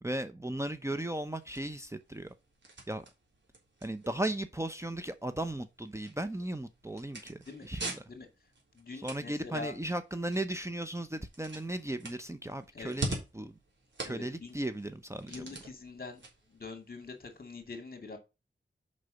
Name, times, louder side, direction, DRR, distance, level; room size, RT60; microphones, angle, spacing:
voice 1, 0.0-2.3 2.9-3.1 3.8-8.0 8.9-13.6 14.0-15.5, right 1 dB, 15° right, 0.8 m, -36 dB
sound 1, 0.7-17.6, right 2 dB, 70° right, 3.6 m, -46 dB
voice 2, 8.7-9.7 12.7-12.9 14.0-14.5 15.3-16.2 16.5-18.2, left 3 dB, 50° left, 2.4 m, -44 dB
6.7 x 5.6 x 5.1 m
wide cardioid pair, 85°, 19 cm